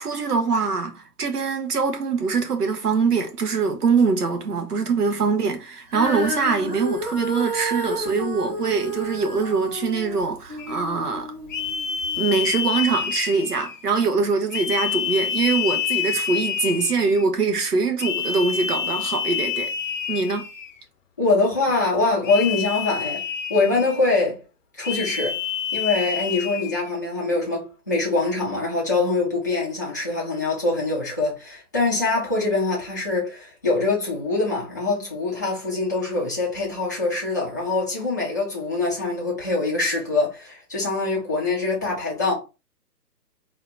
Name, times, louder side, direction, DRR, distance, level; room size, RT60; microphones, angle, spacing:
voice 1, 0.0-11.3 12.2-19.7 20.1-20.5, right 4 dB, 75° right, 1.2 m, -23 dB
Female singing, 5.9-12.2 12.9-13.0, right 1 dB, 25° right, 1.9 m, -31 dB
sound 1, 10.6-10.8 11.5-13.9 14.5-17.3 18.0-20.8 22.2-24.1 24.8-26.9, left 7 dB, 55° left, 0.7 m, -28 dB
voice 2, 21.2-23.2 23.5-24.4 24.8-25.4 25.7-42.4, left 3 dB, 15° left, 0.5 m, -24 dB
3.8 x 2.8 x 3.3 m
figure-of-eight pair, 140°, 47 cm